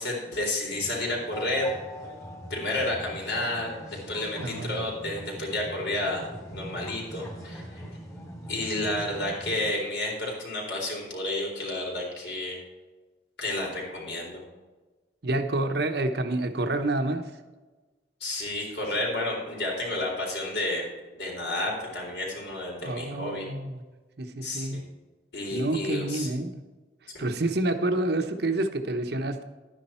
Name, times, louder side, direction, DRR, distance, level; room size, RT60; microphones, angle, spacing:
voice 1, 0.0-1.7 2.5-6.2 6.5-7.8 8.5-12.6 13.4-14.4 18.2-20.9 21.1-23.5 24.4-24.8 25.3-26.3 27.1-27.2, left 1 dB, 70° left, -2 dB, 4.1 m, -31 dB
sound 1, 0.7-9.7, equal, 20° left, 2.4 m, -42 dB
voice 2, 4.4-4.9 15.2-17.3 22.8-23.8 24.2-24.8 25.5-26.6 27.2-29.4, right 2 dB, 60° right, 7 dB, 1.0 m, -28 dB
11.5 x 9.9 x 4.4 m, 1.3 s
head